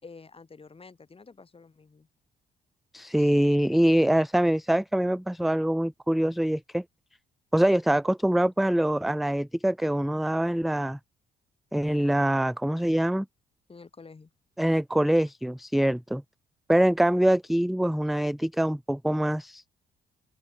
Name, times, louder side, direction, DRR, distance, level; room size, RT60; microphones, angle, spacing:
voice 1, 0.0-2.1 3.2-3.7 13.7-14.3, left 4 dB, 30° left, 3.6 m, -49 dB
voice 2, 2.9-6.8 7.5-11.0 11.7-13.3 14.6-16.2 16.7-19.6, right 1 dB, ahead, 0.5 m, -24 dB
open air
cardioid pair, 90°, 20 cm